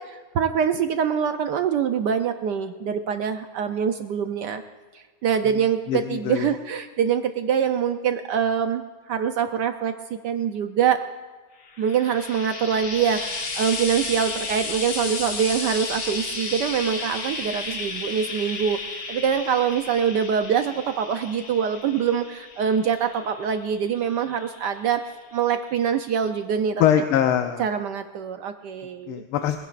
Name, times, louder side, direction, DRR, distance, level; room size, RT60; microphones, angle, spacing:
voice 1, 0.0-4.6 4.9-8.8 9.1-11.0 11.8-18.8 19.1-25.0 25.3-26.8 27.6-29.2, right 7 dB, 70° right, 8 dB, 1.0 m, -24 dB
voice 2, 5.9-6.5 26.8-27.7 29.1-29.6, left 9 dB, 90° left, 6 dB, 1.6 m, -22 dB
Frying (food), 11.6-25.1 26.0-26.1, left 3 dB, 55° left, 2.1 m, -33 dB
23.0 x 16.0 x 2.5 m, 1.4 s
omnidirectional pair, 2.3 m